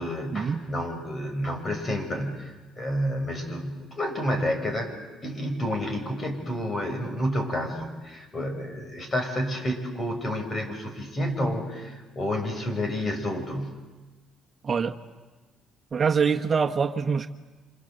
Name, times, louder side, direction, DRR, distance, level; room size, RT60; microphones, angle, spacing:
voice 1, 0.0-4.9 5.2-13.8, equal, 35° left, 5 dB, 6.8 m, -30 dB
voice 2, 14.6-14.9 15.9-17.3, right 6 dB, 40° right, 4 dB, 1.4 m, -24 dB
27.0 x 27.0 x 8.1 m, 1.3 s
supercardioid pair, 80°, 0 cm